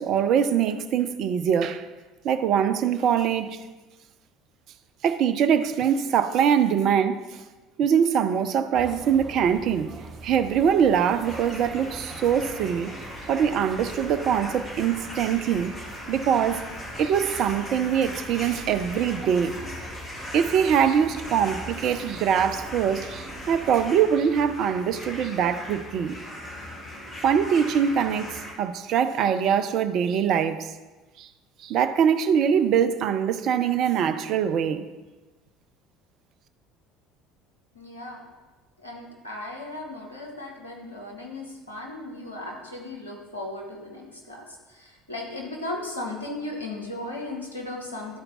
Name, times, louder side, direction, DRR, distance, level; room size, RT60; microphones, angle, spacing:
voice 1, 0.0-1.9 2.2-3.6 5.0-7.3 7.8-9.9 10.2-12.9 13.3-15.8 16.1-16.7 17.0-19.5 20.3-26.2 27.2-30.7 31.2-31.3 31.6-34.9, right 8 dB, 50° right, 0.4 m, -23 dB
sound 1, 8.7-23.9, right 3 dB, 35° right, 1.2 m, -43 dB
sound 2, 11.2-28.5, left 1 dB, 30° left, 1.7 m, -39 dB
voice 2, 37.7-38.2 38.8-48.2, left 2 dB, 85° left, 1.1 m, -36 dB
11.0 x 4.5 x 3.8 m
figure-of-eight pair, 60°, 0 cm